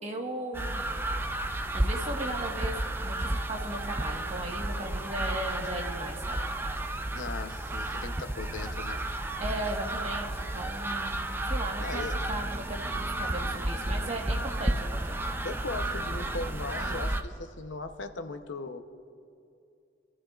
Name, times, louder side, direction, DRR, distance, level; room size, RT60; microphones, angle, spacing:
voice 1, 0.0-0.9 1.7-2.8 3.0-6.4 9.4-15.2, right 1 dB, 35° right, 1 dB, 1.5 m, -37 dB
sound 1, 0.5-17.2, right 1 dB, 10° right, 0.5 m, -32 dB
voice 2, 7.1-9.1 11.8-12.3 15.4-18.8, left 3 dB, 80° left, 8 dB, 0.8 m, -38 dB
27.5 x 13.5 x 2.5 m, 2.5 s
head